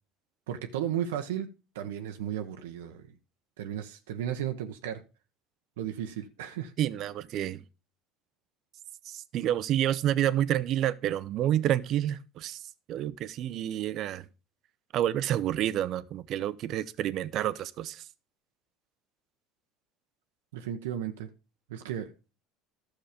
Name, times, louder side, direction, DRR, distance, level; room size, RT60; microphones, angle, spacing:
voice 1, 0.5-1.5 1.7-3.1 3.6-5.0 5.8-6.7 20.5-21.3 21.7-22.1, right 10 dB, 85° right, 0.9 m, -34 dB
voice 2, 6.8-7.6 9.0-12.6 12.9-14.3 14.9-18.0, right 11 dB, 55° right, 0.7 m, -29 dB
12.0 x 6.4 x 5.1 m
supercardioid pair, 95°, 0 cm